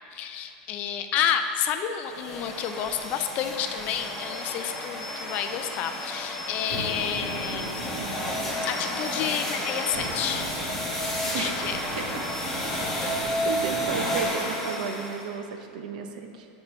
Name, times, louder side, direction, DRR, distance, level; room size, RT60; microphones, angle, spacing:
voice 1, 0.1-7.7 8.6-10.5 11.4-12.1, left 9 dB, 35° left, 8 dB, 0.4 m, -30 dB
sound 1, 2.1-15.3, equal, 5° left, 1.1 m, -31 dB
sound 2, 6.6-8.9 9.9-14.0, right 2 dB, 35° right, 1.4 m, -38 dB
voice 2, 13.4-16.5, right 6 dB, 85° right, 5 dB, 0.7 m, -33 dB
9.8 x 5.5 x 3.1 m, 2.7 s
supercardioid pair, 160°, 4 cm